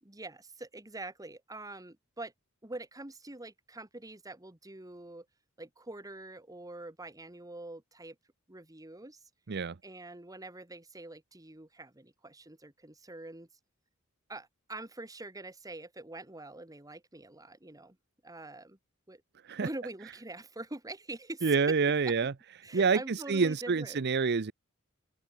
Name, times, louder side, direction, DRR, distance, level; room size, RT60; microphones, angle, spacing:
voice 1, 0.0-2.3 2.6-5.2 5.6-8.1 8.5-9.2 9.8-13.5 14.3-18.0 18.2-18.8 19.1-19.2 19.6-21.7 22.1-22.2 22.6-24.0, right 2 dB, 15° right, 1.8 m, -44 dB
voice 2, 21.4-22.3 22.7-24.5, right 5 dB, 50° right, 0.6 m, -27 dB
open air
head